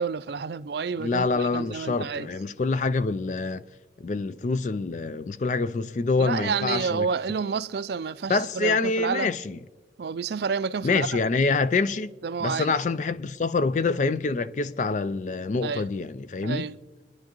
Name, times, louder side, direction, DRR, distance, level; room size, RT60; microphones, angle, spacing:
voice 1, 0.0-2.3 6.2-9.3 10.0-11.1 12.2-12.7 15.6-15.8 16.4-16.8, right 5 dB, 60° right, 0.4 m, -29 dB
voice 2, 1.0-3.6 4.0-7.1 8.3-9.6 10.8-12.1 12.4-16.7, left 3 dB, 40° left, 0.4 m, -26 dB
24.0 x 10.5 x 3.0 m
head